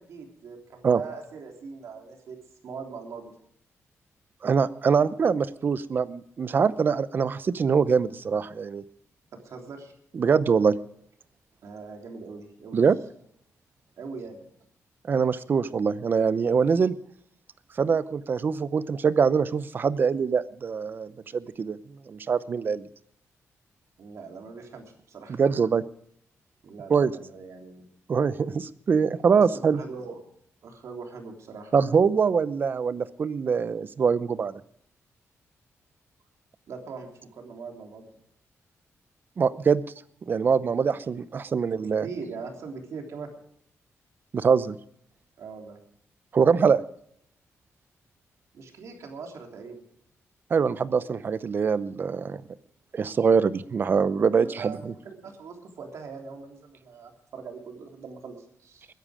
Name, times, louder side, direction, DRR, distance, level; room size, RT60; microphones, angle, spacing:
voice 1, 0.0-2.4 2.6-3.3 5.0-5.1 9.3-9.9 11.6-12.8 14.0-14.4 24.0-25.4 26.6-27.9 29.8-30.2 30.6-31.7 36.7-38.0 41.8-43.3 45.4-45.8 48.5-49.8 54.3-58.9, right 5 dB, 70° right, 3 dB, 3.4 m, -41 dB
voice 2, 4.4-8.8 10.1-10.8 12.7-13.0 15.1-17.0 17.8-21.8 22.1-22.9 25.3-25.8 26.9-27.1 28.1-29.8 31.7-34.6 39.4-39.8 40.3-42.1 44.3-44.8 46.3-46.8 50.5-52.4 52.9-54.9, right 6 dB, 40° right, 16 dB, 0.6 m, -23 dB
21.5 x 10.5 x 5.0 m, 0.68 s
wide cardioid pair, 165°, 5 cm